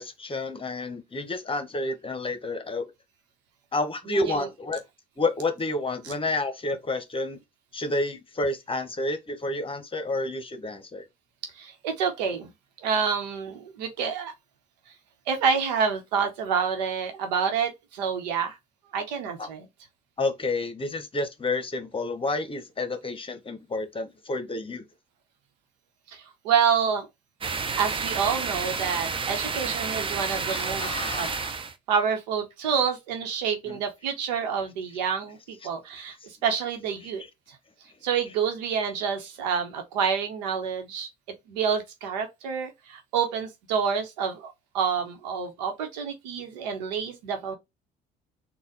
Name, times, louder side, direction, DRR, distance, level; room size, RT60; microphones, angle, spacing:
voice 1, 0.0-2.8 3.7-4.8 5.2-7.4 7.7-11.1 19.4-19.5 20.2-24.9 30.5-31.6 33.7-33.8, left 2 dB, 25° left, 1.0 m, -30 dB
voice 2, 4.1-4.5 6.0-6.1 11.5-12.5 12.8-14.3 15.3-18.6 18.9-19.7 26.1-27.1 27.8-31.3 31.9-37.2 38.0-47.5, right 6 dB, 80° right, 1.0 m, -28 dB
sound 1, 27.4-31.7, right 5 dB, 25° right, 0.7 m, -30 dB
4.0 x 2.4 x 3.9 m
hypercardioid pair, 60°, 21 cm